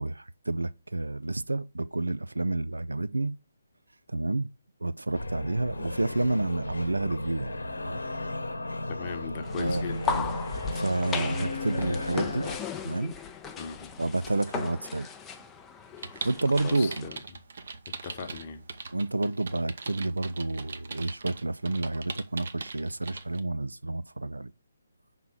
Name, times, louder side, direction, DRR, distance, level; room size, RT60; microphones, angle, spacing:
voice 1, 0.0-3.4 4.1-4.5 4.8-8.0 9.6-10.4 10.7-12.5 12.8-13.1 14.0-15.1 16.2-17.1 18.9-24.5, right 2 dB, 75° right, 0.4 m, -30 dB
sound 1, 5.1-12.6, left 2 dB, 70° left, 1.0 m, -35 dB
voice 2, 8.9-10.4 13.6-13.9 16.6-17.4 18.0-18.6, left 6 dB, 30° left, 1.0 m, -39 dB
sound 2, 9.4-17.1, left 6 dB, 10° left, 0.5 m, -37 dB
sound 3, 16.0-23.4, right 4 dB, 55° right, 0.8 m, -40 dB
5.8 x 3.7 x 5.8 m
figure-of-eight pair, 140°, 0 cm